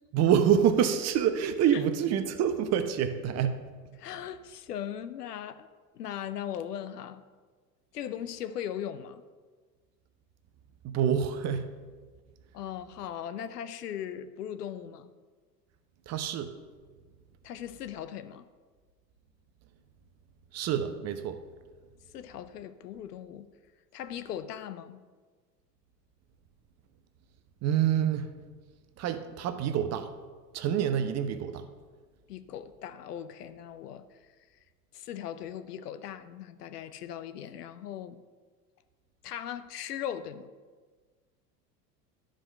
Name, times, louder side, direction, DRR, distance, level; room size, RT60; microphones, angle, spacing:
voice 1, 0.1-3.6 10.8-11.7 16.1-16.5 20.5-21.4 27.6-28.3 29.0-30.1 30.5-31.6, right 9 dB, 30° right, 9 dB, 0.8 m, -26 dB
voice 2, 4.0-5.7 5.9-7.2 7.9-9.2 12.5-15.1 17.4-18.5 22.1-23.5 23.9-25.0 32.3-34.2 34.9-38.2 39.2-40.5, left 10 dB, 70° left, 12 dB, 0.7 m, -39 dB
11.5 x 5.1 x 6.5 m, 1.4 s
figure-of-eight pair, 80°, 49 cm